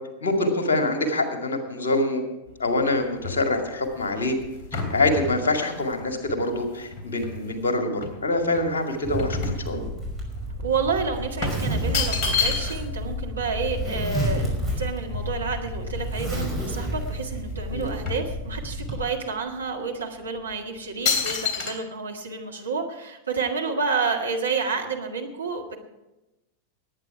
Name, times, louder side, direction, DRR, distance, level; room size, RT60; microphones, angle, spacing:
voice 1, 0.2-2.2 2.6-4.4 4.9-9.9 17.7-18.0, left 2 dB, 65° left, 5 dB, 2.1 m, -25 dB
sound 1, 2.5-7.6 8.0-10.2 10.5-10.7 11.4-13.0 13.3-13.4 13.6-15.7 16.3-16.4 16.6-17.4 17.7-18.9 19.5-19.6 20.3-20.5 21.0-21.7, left 5 dB, 40° left, 3.1 m, -30 dB
Zipper (clothing), 9.0-19.0, equal, ahead, 5.6 m, -30 dB
voice 2, 10.6-25.8, right 4 dB, 75° right, 2 dB, 1.8 m, -29 dB
19.5 x 9.2 x 4.8 m, 0.98 s
figure-of-eight pair, 90°, 0 cm